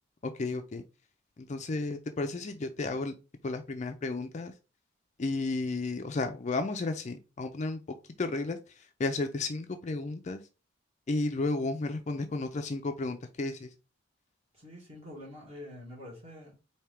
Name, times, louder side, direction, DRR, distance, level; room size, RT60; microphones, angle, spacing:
voice 1, 0.4-0.8 1.5-3.1 3.4-4.5 5.2-7.8 8.2-8.6 9.0-10.4 11.1-13.7, left 3 dB, 35° left, 0.4 m, -32 dB
voice 2, 14.5-16.6, left 1 dB, 30° right, 2.0 m, -46 dB
4.4 x 2.8 x 3.4 m
head